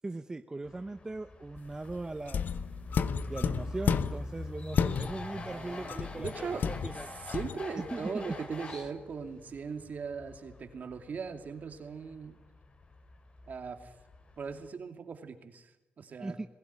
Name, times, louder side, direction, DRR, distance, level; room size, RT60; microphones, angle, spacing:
voice 1, 0.0-2.5 3.3-7.1 7.9-8.2 8.7-8.9 16.2-16.5, right 2 dB, 20° right, 9 dB, 0.8 m, -39 dB
sound 1, 0.6-14.7, left 2 dB, 35° left, 2.9 m, -45 dB
sound 2, 2.2-4.3 4.7-5.4 5.9-7.6, left 7 dB, 65° left, 1.0 m, -32 dB
voice 2, 5.4-12.4 13.5-13.9 14.4-16.5, right 5 dB, 55° right, 7 dB, 2.7 m, -40 dB
21.5 x 16.5 x 10.0 m, 0.96 s
cardioid pair, 105°, 3 cm